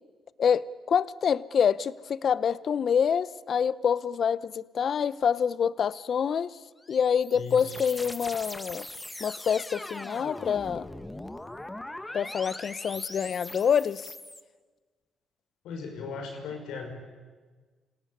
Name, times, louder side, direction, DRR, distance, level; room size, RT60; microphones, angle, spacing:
voice 1, 0.4-6.6 6.9-8.9 9.2-10.9 12.1-14.1, left 7 dB, 55° left, 18 dB, 0.7 m, -26 dB
sound 1, 6.8-14.4, left 1 dB, 10° left, 1.3 m, -41 dB
voice 2, 7.3-7.9 15.6-16.9, left 4 dB, 85° left, 4 dB, 5.2 m, -38 dB
26.5 x 17.5 x 9.8 m, 1.4 s
cardioid pair, 90°, 0 cm